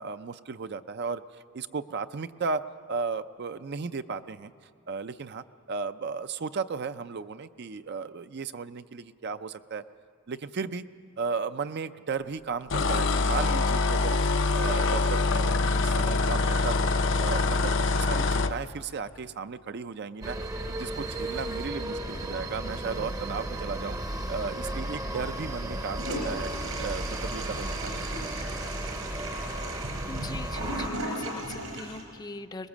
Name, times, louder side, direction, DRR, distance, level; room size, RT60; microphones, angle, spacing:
voice 1, 0.0-2.6 2.9-4.5 4.9-9.8 10.3-10.9 11.2-16.9 17.2-20.4 20.7-24.0 24.3-26.5 26.8-28.1, right 5 dB, 50° right, 11 dB, 0.5 m, -35 dB
sound 1, 12.7-18.5, left 3 dB, 60° left, 0.6 m, -24 dB
sound 2, 20.2-30.9, right 1 dB, 15° right, 0.7 m, -34 dB
Toilet flush, 26.0-32.0, right 1 dB, 75° right, 4.5 m, -36 dB
voice 2, 30.1-32.7, left 3 dB, 20° left, 9 dB, 0.6 m, -41 dB
23.0 x 20.5 x 7.3 m, 2.2 s
head